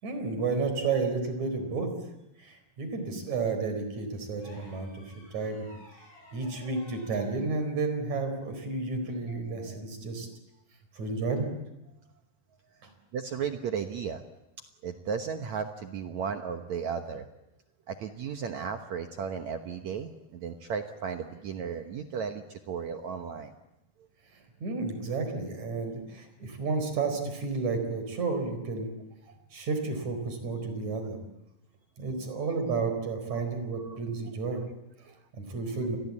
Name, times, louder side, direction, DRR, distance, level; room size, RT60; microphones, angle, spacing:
voice 1, 0.0-1.9 2.4-5.7 6.3-10.3 10.9-11.5 24.6-28.9 29.5-31.2 32.0-34.6 35.3-36.0, right 4 dB, 45° right, 7 dB, 5.5 m, -31 dB
sound 1, 4.4-7.3 9.0-9.2, equal, 80° left, 9.0 m, -53 dB
voice 2, 6.3-6.7 9.3-9.4 9.7-9.8 13.1-14.2 14.8-17.3 17.9-23.5 29.3-29.4 33.8-34.0 35.1-35.2, right 6 dB, 65° right, 7 dB, 1.8 m, -35 dB
29.0 x 22.0 x 8.6 m, 0.89 s
omnidirectional pair, 4.6 m